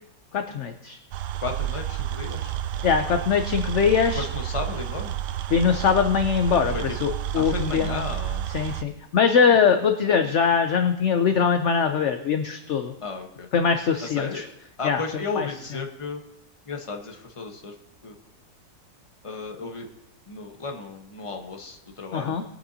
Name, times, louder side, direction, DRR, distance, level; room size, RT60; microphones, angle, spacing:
voice 1, 0.3-1.0 2.8-4.2 5.5-8.0 8.5-12.9 13.5-14.4 14.8-15.0 15.4-15.5 22.1-22.4, left 6 dB, 65° left, 7 dB, 0.7 m, -22 dB
sound 1, 1.1-8.8, right 12 dB, 75° right, 1.2 m, -30 dB
voice 2, 1.4-2.5 4.1-5.1 6.6-7.0 7.3-8.5 9.7-9.9 13.0-13.5 14.0-14.5 14.8-16.2 16.7-17.7 18.0-18.1 19.2-19.9 20.3-22.4, left 4 dB, 20° left, 2 dB, 1.0 m, -34 dB
21.0 x 8.9 x 2.8 m, 0.82 s
omnidirectional pair, 1.9 m